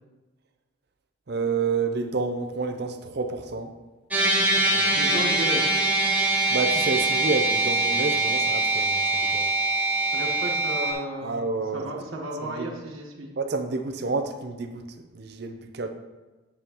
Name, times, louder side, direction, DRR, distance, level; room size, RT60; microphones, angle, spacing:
voice 1, 1.3-3.7 4.6-5.0 6.5-9.5 11.2-11.9 12.4-12.7 13.4-14.8 15.1-15.9, right 4 dB, 50° right, 7 dB, 0.6 m, -29 dB
sound 1, 4.1-10.9, right 2 dB, 10° right, 1.0 m, -23 dB
voice 2, 4.9-5.6 10.1-11.4 11.7-13.3, right 1 dB, 85° right, 0 dB, 1.3 m, -33 dB
8.8 x 6.9 x 3.0 m, 1.2 s
head